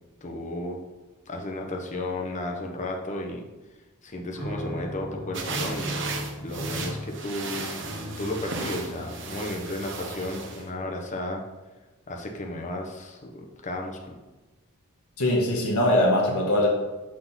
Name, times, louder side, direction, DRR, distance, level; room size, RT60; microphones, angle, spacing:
voice 1, 0.2-0.8 1.3-3.5 4.0-6.0 6.4-7.8 8.2-11.4 12.1-14.2, left 1 dB, 35° left, 1 dB, 0.9 m, -33 dB
sound 1, 4.3-10.8, equal, 10° left, 2.3 m, -37 dB
sound 2, 5.3-10.6, right 4 dB, 55° right, 0.9 m, -35 dB
voice 2, 15.2-16.7, left 1 dB, 80° left, -3 dB, 1.3 m, -21 dB
6.0 x 3.8 x 5.6 m, 1.1 s
head